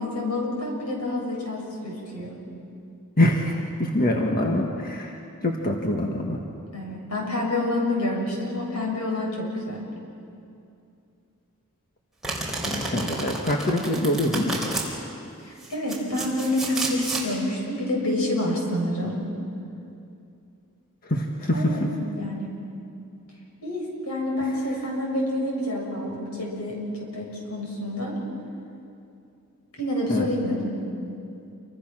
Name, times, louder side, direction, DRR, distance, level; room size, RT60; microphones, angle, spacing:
voice 1, 0.0-2.4 6.7-9.8 15.4-19.2 21.5-22.5 23.6-28.2 29.8-30.8, left 1 dB, 90° left, -1 dB, 7.4 m, -28 dB
voice 2, 3.2-5.2 5.4-6.4 12.6-14.8 21.0-21.9 30.1-30.3, left 1 dB, 40° left, 1 dB, 1.7 m, -24 dB
Domestic sounds home sounds, 12.2-14.9 15.6-17.3, right 2 dB, ahead, 4.2 m, -31 dB
28.5 x 24.0 x 6.3 m, 2.6 s
head